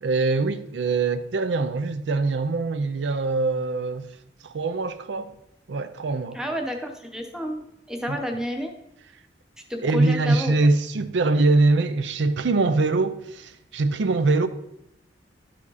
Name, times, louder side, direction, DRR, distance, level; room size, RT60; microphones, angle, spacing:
voice 1, 0.0-4.1 4.4-5.3 5.7-6.4 8.1-8.2 9.8-14.5, right 3 dB, 80° right, 0.5 m, -23 dB
voice 2, 6.3-8.8 9.7-10.6, equal, 5° right, 0.8 m, -30 dB
11.5 x 5.0 x 4.0 m
head